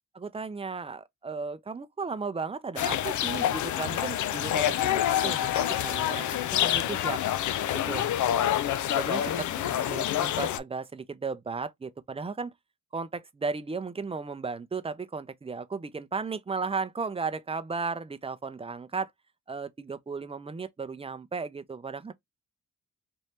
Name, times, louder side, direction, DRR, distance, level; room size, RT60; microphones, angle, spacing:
voice 1, 0.2-7.2 7.9-8.0 8.9-12.5 12.9-19.1 19.5-22.1, right 4 dB, 20° right, 0.5 m, -35 dB
sound 1, 2.8-10.6, left 11 dB, 70° left, 0.5 m, -27 dB
3.3 x 2.6 x 2.9 m
cardioid pair, 70°, 31 cm